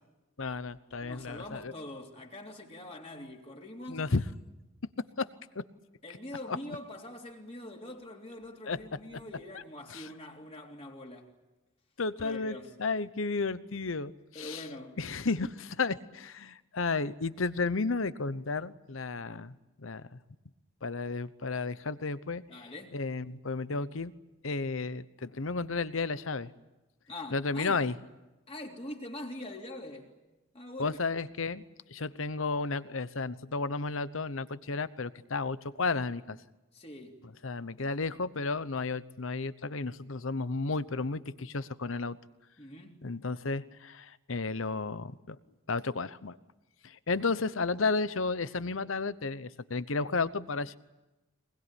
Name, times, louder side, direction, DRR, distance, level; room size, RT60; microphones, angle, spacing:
voice 1, 0.4-1.7 3.9-4.2 5.2-5.3 6.5-6.6 8.7-8.8 9.9-10.1 12.0-14.6 15.0-19.5 19.8-20.0 20.8-22.4 22.9-24.1 24.4-26.5 27.3-28.0 30.8-31.6 31.9-36.4 37.4-42.2 43.0-45.4 45.7-46.4 46.8-50.8, left 3 dB, 75° left, 0.9 m, -33 dB
voice 2, 1.0-4.0 6.0-11.3 12.2-12.7 14.3-15.0 22.5-23.0 27.1-27.9 28.5-30.1 30.5-31.0 36.7-37.2 42.6-43.0, left 1 dB, 30° left, 3.2 m, -44 dB
23.5 x 21.5 x 10.0 m
head